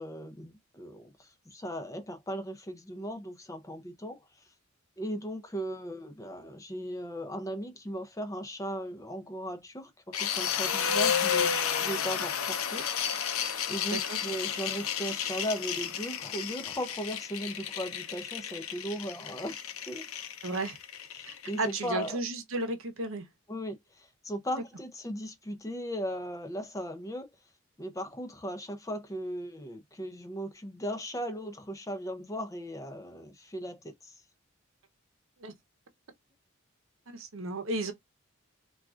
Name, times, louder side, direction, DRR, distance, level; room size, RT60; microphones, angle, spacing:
voice 1, 0.0-4.2 5.0-9.9 10.2-11.5 11.8-12.8 13.7-19.6 19.9-20.0 21.1-22.2 23.5-27.3 27.8-34.1, equal, 15° left, 0.5 m, -37 dB
sound 1, 10.1-22.1, left 8 dB, 90° left, 0.6 m, -32 dB
voice 2, 20.4-20.8 21.3-23.3 24.6-24.7 35.4-35.5 37.1-37.9, right 2 dB, 70° right, 0.8 m, -34 dB
3.5 x 2.4 x 2.4 m
head